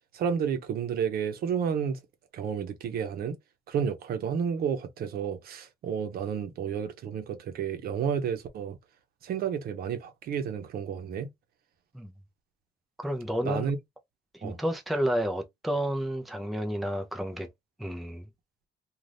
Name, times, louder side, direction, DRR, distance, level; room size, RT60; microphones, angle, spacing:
voice 1, 0.1-2.0 2.3-3.4 3.7-8.8 9.2-11.3 13.4-13.8 14.4-14.6, right 7 dB, 65° right, 0.8 m, -31 dB
voice 2, 13.0-13.7 14.3-17.5 17.8-18.2, equal, ahead, 0.5 m, -30 dB
2.6 x 2.4 x 3.3 m
cardioid pair, 110°, 17 cm